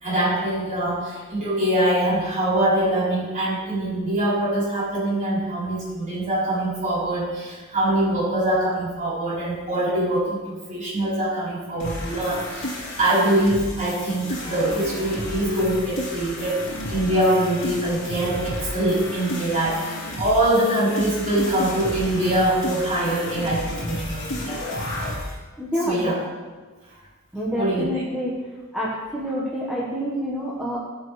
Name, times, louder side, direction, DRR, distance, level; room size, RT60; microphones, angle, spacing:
voice 1, 0.0-24.6 25.8-26.2 27.5-28.0, right 1 dB, 35° right, -9 dB, 4.0 m, -23 dB
sound 1, 11.8-25.4, left 1 dB, 60° left, 3.4 m, -32 dB
voice 2, 25.6-26.2 27.3-28.3 28.7-30.8, equal, ahead, -7 dB, 1.4 m, -27 dB
17.0 x 8.0 x 3.3 m, 1.4 s
head